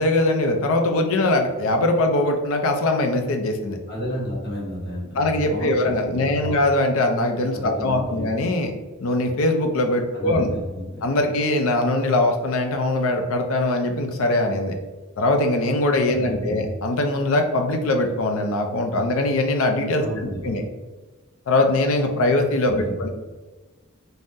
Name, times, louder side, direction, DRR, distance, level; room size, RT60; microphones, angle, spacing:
voice 1, 0.0-3.8 5.2-8.7 9.0-10.5 11.0-14.8 15.2-20.6 21.5-23.1, left 2 dB, 65° left, 5 dB, 0.4 m, -21 dB
voice 2, 3.9-6.6 7.5-8.4 10.1-11.1 16.1-16.6 20.0-20.6 22.7-23.1, equal, 50° left, -5 dB, 1.1 m, -32 dB
3.5 x 2.0 x 2.6 m, 1.2 s
head